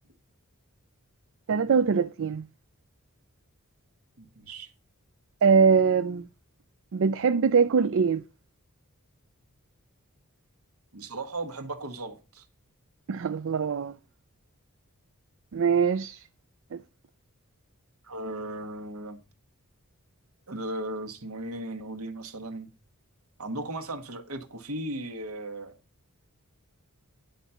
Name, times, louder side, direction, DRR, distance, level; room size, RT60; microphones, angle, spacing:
voice 1, 1.5-2.5 5.4-6.3 6.9-8.2 13.1-13.9 15.5-16.2 16.7-16.8, right 6 dB, 60° right, 0.4 m, -23 dB
voice 2, 4.2-4.7 10.9-12.4 18.0-19.2 20.5-22.7 23.4-25.7, right 1 dB, 75° right, 1.4 m, -36 dB
10.0 x 4.2 x 6.9 m
head